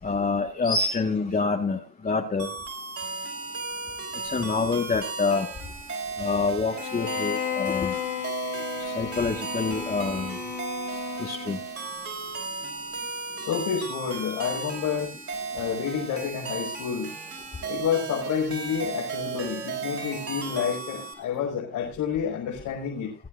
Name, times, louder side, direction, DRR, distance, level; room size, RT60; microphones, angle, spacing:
voice 1, 0.0-2.5 4.2-5.5 6.2-7.9 8.8-10.4 11.2-11.6, left 4 dB, 30° left, 1.7 m, -26 dB
sound 1, 2.4-21.1, right 4 dB, 50° right, 6.1 m, -35 dB
Bowed string instrument, 6.7-11.8, left 8 dB, 75° left, 2.0 m, -33 dB
voice 2, 13.4-15.1 15.5-17.1 17.6-23.1, left 7 dB, 90° left, 6.0 m, -29 dB
23.0 x 11.5 x 2.6 m
cardioid pair, 90°, 30 cm